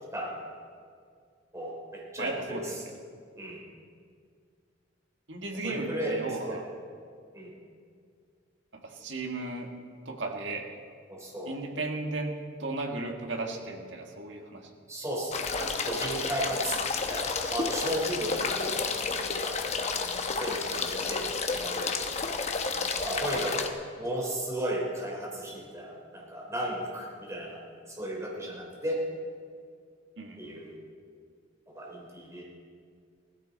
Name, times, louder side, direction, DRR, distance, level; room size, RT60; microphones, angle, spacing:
voice 1, 1.5-2.8 3.3-3.6 5.6-6.2 6.5-6.6 7.3-7.5 11.1-11.6 14.9-16.8 17.1-19.6 20.4-22.2 23.0-23.7 23.9-27.6 27.9-29.0 30.4-30.7 31.7-32.4, right 1 dB, 15° right, -3 dB, 3.3 m, -35 dB
voice 2, 2.2-2.8 5.3-6.7 8.7-9.7 10.1-10.7 11.5-14.7 20.7-21.0 30.2-30.4, right 2 dB, 65° right, 2 dB, 1.8 m, -35 dB
sound 1, 15.3-23.7, left 4 dB, 35° left, 0.9 m, -31 dB
17.5 x 15.0 x 4.1 m, 2.2 s
head